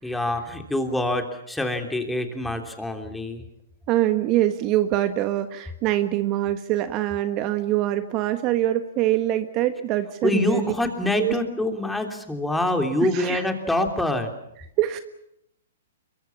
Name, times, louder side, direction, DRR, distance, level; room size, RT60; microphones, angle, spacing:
voice 1, 0.0-3.4 10.2-14.3, left 2 dB, 5° left, 4 dB, 3.2 m, -25 dB
voice 2, 3.9-10.7 11.2-11.4 13.1-13.4 14.8-15.0, right 13 dB, 35° right, 9 dB, 1.3 m, -24 dB
25.0 x 23.0 x 7.2 m, 0.79 s
hypercardioid pair, 130°, 0 cm